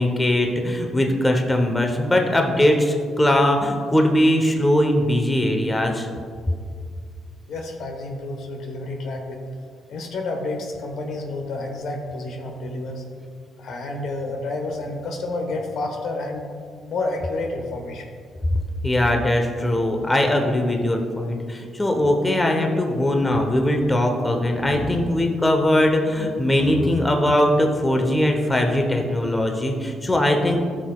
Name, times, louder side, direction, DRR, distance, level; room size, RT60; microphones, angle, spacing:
voice 1, 0.0-6.1 18.8-30.6, left 1 dB, 15° left, 3 dB, 0.9 m, -20 dB
voice 2, 7.5-9.4 9.9-13.0 13.6-16.4 16.9-18.1 23.3-23.4 24.5-25.2 26.5-26.9, left 2 dB, 75° left, 2 dB, 1.2 m, -30 dB
13.5 x 6.4 x 2.4 m, 2.1 s
cardioid pair, 90°, 0 cm